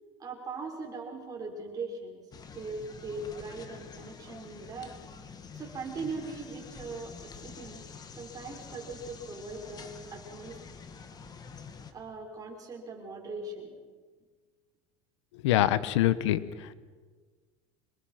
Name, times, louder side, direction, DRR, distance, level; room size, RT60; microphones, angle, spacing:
voice 1, 0.2-2.2 2.5-4.9 5.5-7.9 8.2-10.6 11.9-13.8, right 3 dB, 25° right, 0 dB, 6.0 m, -40 dB
sound 1, 2.3-11.9, left 5 dB, 25° left, 2.1 m, -47 dB
voice 2, 15.4-16.7, left 13 dB, 85° left, 15 dB, 1.1 m, -25 dB
27.0 x 21.5 x 5.9 m, 1.5 s
supercardioid pair, 125°, 15 cm